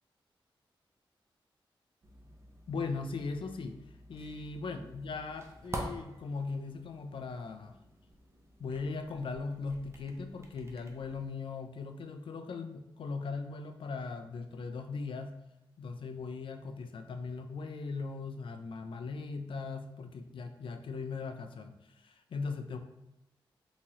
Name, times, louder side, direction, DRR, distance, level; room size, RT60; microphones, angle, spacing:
sound 1, 2.0-11.3, right 1 dB, 30° right, 0.6 m, -48 dB
voice 1, 2.7-3.8 4.1-7.8 8.6-15.4 15.8-22.8, left 4 dB, 70° left, 7 dB, 0.3 m, -39 dB
3.6 x 2.9 x 2.9 m, 0.90 s
wide cardioid pair, 110°, 9 cm